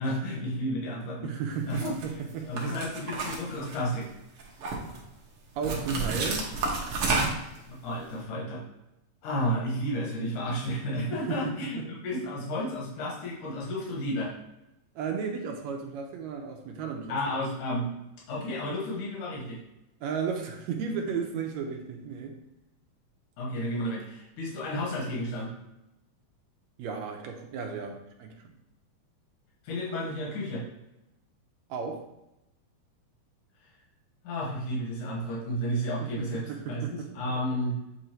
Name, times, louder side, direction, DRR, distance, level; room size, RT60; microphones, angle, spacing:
voice 1, 0.0-1.3 1.7-4.1 7.7-8.6 9.2-14.3 17.1-17.9 18.3-19.6 23.4-25.5 29.6-30.6 34.2-37.8, equal, 80° left, -3 dB, 2.8 m, -32 dB
voice 2, 1.2-2.5 5.6-6.5 11.1-11.9 15.0-17.2 20.0-22.4 26.8-28.5 31.7-32.0 36.0-37.1, right 6 dB, 75° right, 2 dB, 1.9 m, -34 dB
sound 1, 1.7-2.0 2.6-4.0 4.4-5.0 5.6-7.6, right 3 dB, 60° right, 1.6 m, -30 dB
8.0 x 2.7 x 4.4 m, 0.90 s
omnidirectional pair, 3.5 m